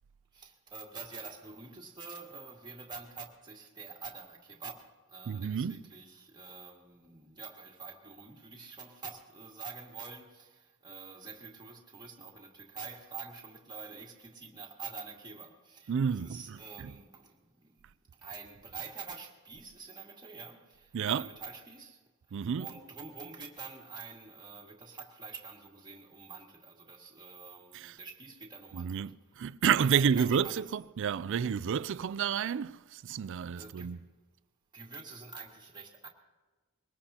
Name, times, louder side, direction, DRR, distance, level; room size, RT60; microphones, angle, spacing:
voice 1, 0.3-17.8 18.2-22.0 22.3-29.1 29.7-30.8 33.6-34.0 34.7-36.1, right 5 dB, 20° right, 2.1 m, -47 dB
voice 2, 5.3-5.9 15.9-17.0 20.9-21.3 22.3-22.7 27.7-28.0 28.7-34.0, right 7 dB, 60° right, 0.4 m, -30 dB
23.0 x 19.5 x 2.9 m
head